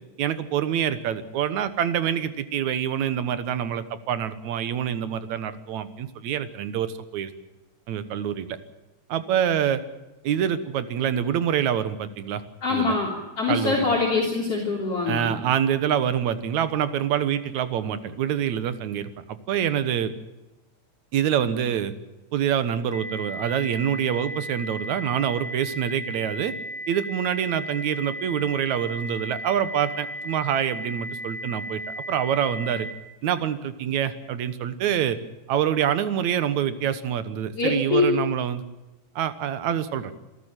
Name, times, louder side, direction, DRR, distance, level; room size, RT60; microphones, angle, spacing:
voice 1, 0.2-7.3 7.9-8.6 9.1-9.8 10.2-12.4 12.7-12.9 13.5-14.0 15.1-20.1 21.1-21.9 22.3-26.5 26.9-31.8 32.1-32.9 33.2-35.2 35.5-38.6 39.2-40.1, right 9 dB, 65° right, 13 dB, 2.5 m, -26 dB
voice 2, 12.6-13.1 13.4-15.3 37.6-38.1, left 4 dB, 50° left, -2 dB, 4.2 m, -23 dB
sound 1, 22.9-32.9, equal, 15° right, 2.1 m, -35 dB
27.0 x 13.0 x 9.1 m, 1.0 s
omnidirectional pair, 3.6 m